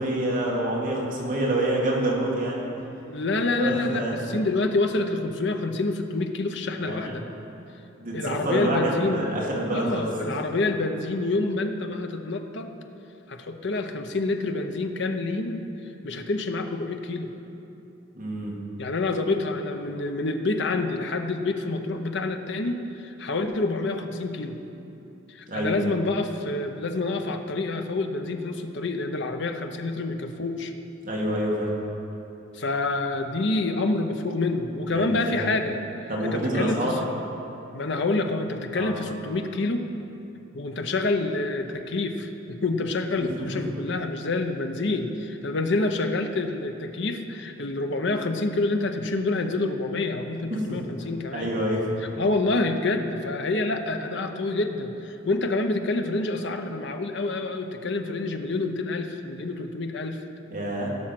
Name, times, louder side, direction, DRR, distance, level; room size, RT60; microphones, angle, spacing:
voice 1, 0.0-2.7 3.4-4.1 6.8-7.1 8.0-10.3 18.1-18.6 25.5-25.7 31.0-31.7 34.9-35.5 36.1-37.0 38.7-38.9 43.2-43.6 50.5-50.6 51.3-51.9 60.5-60.9, right 1 dB, 40° right, -3 dB, 2.0 m, -27 dB
voice 2, 3.1-7.2 8.1-9.3 9.7-12.7 13.3-15.6 16.0-17.3 18.8-24.6 25.3-30.7 32.5-35.8 36.2-37.0 37.7-39.9 40.5-42.3 42.6-51.5 52.0-60.2, left 2 dB, 60° left, 5 dB, 0.8 m, -27 dB
16.0 x 6.4 x 5.9 m, 2.9 s
head